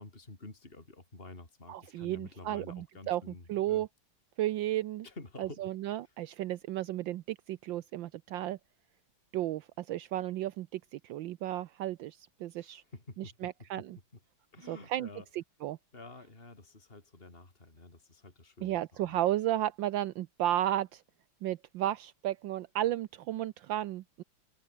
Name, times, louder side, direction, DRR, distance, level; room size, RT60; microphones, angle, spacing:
voice 1, 0.0-3.9 5.0-5.7 6.0-6.1 12.6-13.5 13.8-13.9 14.1-14.2 14.5-15.3 15.9-19.2, left 2 dB, 25° left, 4.3 m, -50 dB
voice 2, 1.7-3.2 3.5-3.9 4.4-5.0 5.4-8.6 9.3-12.8 13.4-14.0 14.7-15.1 15.6-15.8 18.6-21.0 21.4-24.2, right 13 dB, 75° right, 1.4 m, -33 dB
omnidirectional pair, 2.2 m